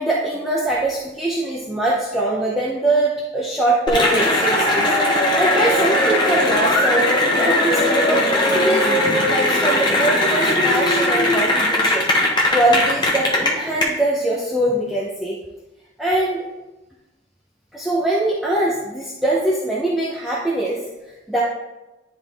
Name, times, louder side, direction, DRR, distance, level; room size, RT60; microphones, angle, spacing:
voice 1, 0.0-7.1 7.4-15.4 16.0-16.4 17.7-20.8 21.3-21.4, right 1 dB, ahead, -6 dB, 0.7 m, -22 dB
Cheering / Applause, 3.9-13.8, left 1 dB, 20° left, 1.1 m, -18 dB
10.5 x 3.7 x 3.4 m, 1.1 s
head